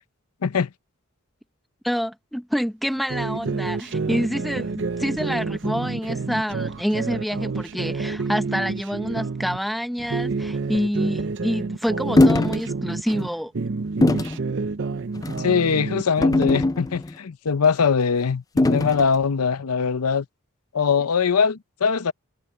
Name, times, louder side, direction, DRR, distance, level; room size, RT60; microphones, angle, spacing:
voice 1, 1.8-13.5, equal, ahead, 0.9 m, -27 dB
sound 1, 3.1-9.6 10.0-13.3 13.5-16.7, right 4 dB, 55° right, 0.6 m, -29 dB
sound 2, 12.2-12.6 13.1-13.2 14.0-14.4 15.2-15.5 16.2-17.1 18.6-19.1, left 2 dB, 15° left, 0.3 m, -19 dB
voice 2, 15.4-20.3 20.7-22.1, left 6 dB, 85° left, 0.6 m, -22 dB
head